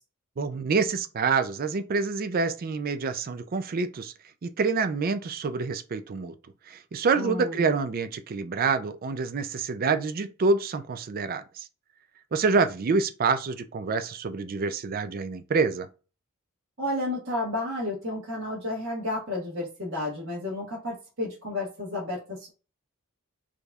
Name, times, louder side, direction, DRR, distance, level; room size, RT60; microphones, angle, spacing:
voice 1, 0.4-4.1 4.4-6.3 6.7-11.6 12.3-15.9, right 4 dB, 40° right, 0.4 m, -27 dB
voice 2, 7.1-7.7 16.8-22.5, left 2 dB, 60° right, 1.4 m, -32 dB
4.9 x 2.8 x 2.3 m
head